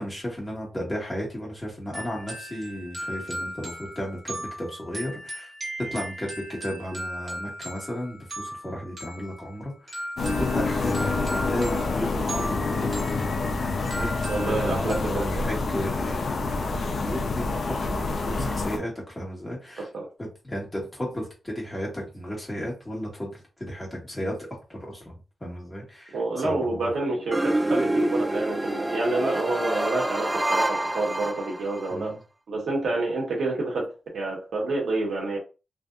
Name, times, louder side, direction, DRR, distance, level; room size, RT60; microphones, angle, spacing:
voice 1, 0.0-5.5 5.9-11.0 11.3-13.1 13.6-19.9 20.2-24.4 24.7-25.1 25.4-26.2 26.4-26.9 31.9-32.2, equal, 15° left, 1.7 m, -34 dB
sound 1, 1.9-15.0, equal, 50° right, 1.8 m, -37 dB
sound 2, 10.2-18.8, left 3 dB, 65° left, 0.6 m, -27 dB
voice 2, 14.2-15.4 19.8-20.1 26.1-32.2 32.5-35.4, right 2 dB, 85° right, 1.4 m, -28 dB
sound 3, 27.3-31.9, right 1 dB, 15° right, 0.4 m, -27 dB
3.4 x 2.7 x 2.5 m
wide cardioid pair, 95°, 0 cm